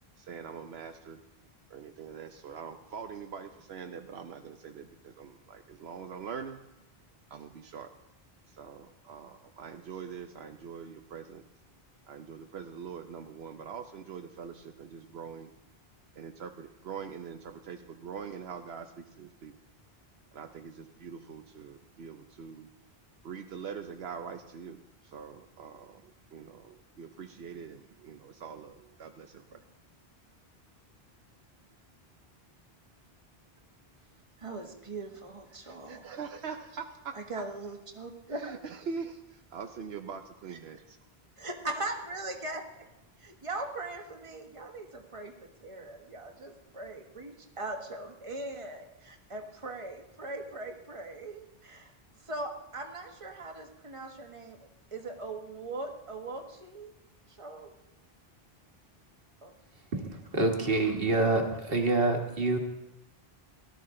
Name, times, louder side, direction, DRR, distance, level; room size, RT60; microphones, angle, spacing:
voice 1, 0.2-1.2 1.7-6.6 7.3-7.9 8.5-11.4 12.1-15.5 16.2-19.5 20.3-22.7 23.2-29.6 35.6-37.4 38.3-41.0, right 6 dB, 80° right, 6 dB, 1.0 m, -43 dB
voice 2, 34.4-36.0 37.1-38.5 41.4-42.8 43.2-51.9 52.2-54.6 54.9-56.9 57.3-57.7 59.4-59.5, right 2 dB, 30° right, 3 dB, 1.4 m, -40 dB
voice 3, 59.9-62.6, right 2 dB, 65° right, 3 dB, 1.9 m, -27 dB
17.5 x 13.0 x 3.8 m, 0.90 s
omnidirectional pair, 1.0 m